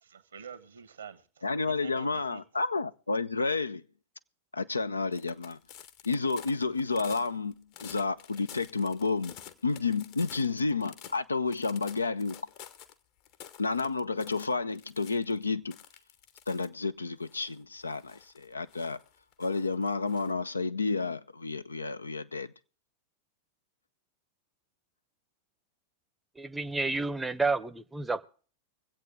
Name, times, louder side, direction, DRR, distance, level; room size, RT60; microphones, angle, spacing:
voice 1, 0.0-1.4 1.8-2.4, right 7 dB, 70° right, 1.2 m, -47 dB
voice 2, 1.4-3.8 4.5-5.6 6.0-7.5 7.8-9.3 9.6-12.4 13.6-15.8 16.5-19.0 19.4-22.5, left 4 dB, 80° left, 0.5 m, -30 dB
sound 1, 5.1-11.2 11.5-12.9 13.3-15.4 15.7-16.7 17.2-20.3, left 10 dB, 45° left, 1.0 m, -50 dB
voice 3, 26.4-28.3, right 3 dB, 10° right, 0.7 m, -30 dB
24.5 x 8.2 x 3.5 m
figure-of-eight pair, 90°, 0 cm